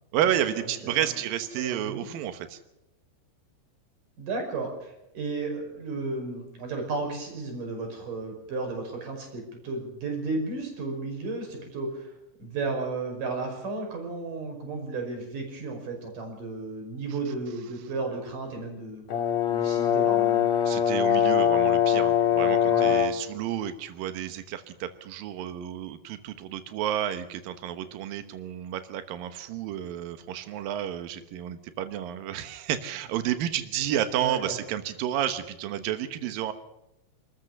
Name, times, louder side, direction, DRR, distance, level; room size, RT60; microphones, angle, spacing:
voice 1, 0.1-2.6 20.6-36.5, right 11 dB, 85° right, 10 dB, 2.0 m, -31 dB
voice 2, 1.5-2.1 4.2-12.1 12.4-19.1 19.5-20.4 22.7-22.9 34.2-34.6, right 3 dB, 40° right, 3 dB, 6.5 m, -33 dB
Brass instrument, 19.1-23.3, left 9 dB, 50° left, 2.2 m, -22 dB
28.0 x 14.0 x 6.8 m, 0.88 s
omnidirectional pair, 5.9 m